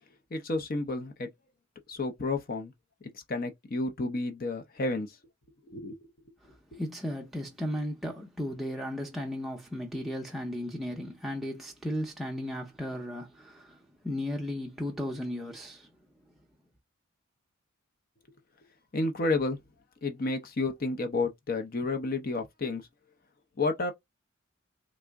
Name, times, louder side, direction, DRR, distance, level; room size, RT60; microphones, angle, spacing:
voice 1, 0.3-1.3 1.9-2.7 3.3-5.2 5.7-6.0 6.7-6.8 18.9-19.6 20.0-22.9 23.6-23.9, left 3 dB, 40° left, 0.5 m, -31 dB
voice 2, 6.4-15.9, left 1 dB, ahead, 0.5 m, -35 dB
3.5 x 2.0 x 3.4 m
head